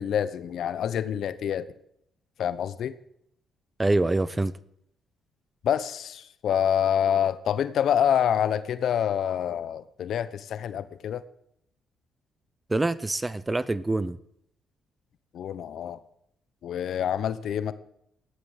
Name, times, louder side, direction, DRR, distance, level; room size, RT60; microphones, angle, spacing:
voice 1, 0.0-1.7 2.4-3.0 5.6-11.2 15.3-16.0 16.6-17.7, left 9 dB, 70° left, 0.9 m, -26 dB
voice 2, 3.8-4.5 12.7-14.2, right 2 dB, 15° right, 0.8 m, -25 dB
14.5 x 11.5 x 8.2 m
cardioid pair, 90°, 0 cm